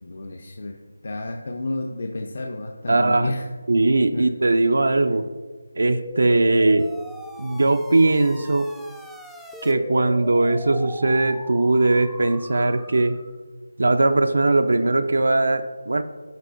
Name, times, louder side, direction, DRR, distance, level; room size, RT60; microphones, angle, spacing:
voice 1, 0.0-3.5 4.1-4.3, left 2 dB, 55° left, 2 dB, 0.6 m, -31 dB
voice 2, 2.9-3.3 3.7-5.3 5.8-6.9 7.4-8.7 9.6-13.2 13.8-16.0, right 2 dB, 75° right, 9 dB, 0.5 m, -19 dB
sound 1, 5.9-13.4, equal, ahead, 0.4 m, -40 dB
13.5 x 4.8 x 2.6 m, 1.4 s
figure-of-eight pair, 165°, 0 cm